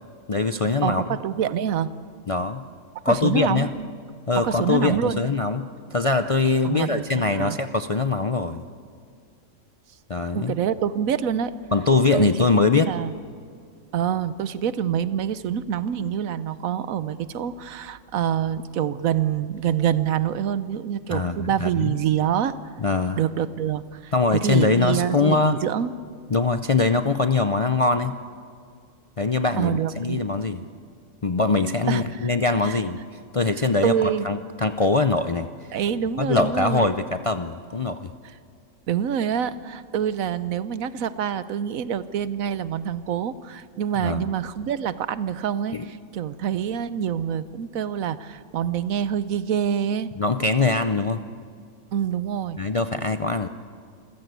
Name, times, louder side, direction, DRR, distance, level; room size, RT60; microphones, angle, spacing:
voice 1, 0.3-1.0 2.3-2.6 3.0-3.7 4.3-8.6 10.1-10.5 11.7-12.9 21.1-21.9 22.8-23.2 24.1-25.6 26.3-28.2 29.2-30.6 31.2-33.0 33.3-35.5 36.2-38.1 44.0-44.3 45.7-45.9 50.2-51.2 52.6-53.5, left 3 dB, 40° left, 8 dB, 0.5 m, -22 dB
voice 2, 0.8-1.9 3.1-3.9 4.4-5.2 6.6-7.6 10.3-11.5 12.1-12.3 12.7-13.1 13.9-22.6 23.2-25.9 29.6-30.2 31.9-32.3 32.6-32.8 33.8-34.3 35.7-36.9 38.9-50.1 51.9-52.6, right 9 dB, 85° right, 14 dB, 1.2 m, -26 dB
27.0 x 15.5 x 8.2 m, 2.2 s
omnidirectional pair, 1.4 m